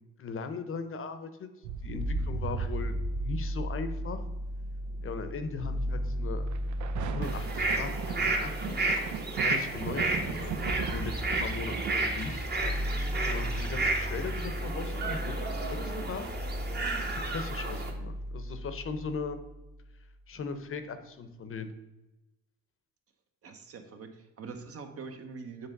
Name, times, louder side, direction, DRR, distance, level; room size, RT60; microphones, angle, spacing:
voice 1, 0.2-1.5 1.8-4.2 5.0-6.5 7.1-8.6 9.4-10.6 10.9-11.1 11.4-12.5 13.2-16.3 17.1-19.4 20.3-21.7, left 5 dB, 45° left, 9 dB, 0.8 m, -38 dB
sound 1, 1.6-5.2 6.5-11.9, right 8 dB, 70° right, 0.5 m, -39 dB
sound 2, 2.0-19.9, equal, 5° right, 0.5 m, -35 dB
sound 3, 7.2-17.9, right 2 dB, 35° right, 1.1 m, -32 dB
voice 2, 23.4-25.7, right 4 dB, 50° right, 6 dB, 1.0 m, -44 dB
7.1 x 3.2 x 5.2 m, 1.0 s
cardioid pair, 90°, 30 cm